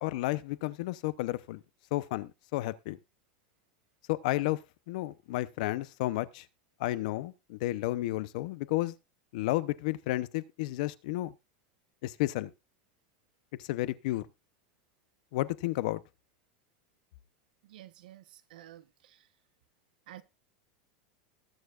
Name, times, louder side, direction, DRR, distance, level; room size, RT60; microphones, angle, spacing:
voice 1, 0.0-1.6 1.9-3.0 4.1-4.6 4.9-6.4 6.8-8.9 9.3-11.3 12.0-12.5 13.6-14.3 15.3-16.0, left 17 dB, 60° left, 0.7 m, -32 dB
voice 2, 17.6-19.3 20.1-20.2, right 13 dB, 90° right, 1.0 m, -51 dB
19.5 x 7.1 x 2.4 m
supercardioid pair, 165°, 5 cm